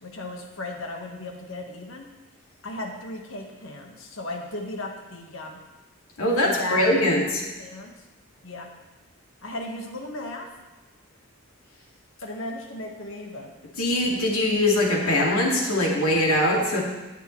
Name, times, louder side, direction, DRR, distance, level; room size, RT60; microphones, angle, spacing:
voice 1, 0.0-2.1 2.6-5.6 6.4-7.9 8.4-8.7 9.4-10.5 12.2-13.6, left 2 dB, 65° left, 2 dB, 1.5 m, -35 dB
voice 2, 6.2-7.4 13.8-16.8, left 1 dB, 90° left, -2 dB, 2.3 m, -22 dB
20.0 x 6.8 x 3.2 m, 1.1 s
head